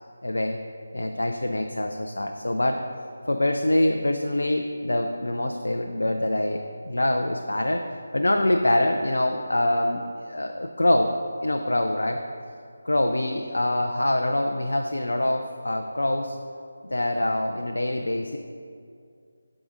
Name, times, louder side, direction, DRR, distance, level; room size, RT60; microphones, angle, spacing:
voice 1, 0.2-0.6 0.9-2.8 3.3-7.8 8.1-11.1 11.4-12.2 12.8-16.4 16.9-18.4, left 1 dB, 65° left, 4 dB, 0.5 m, -25 dB
13.5 x 4.8 x 2.6 m, 2.3 s
figure-of-eight pair, 160°, 0 cm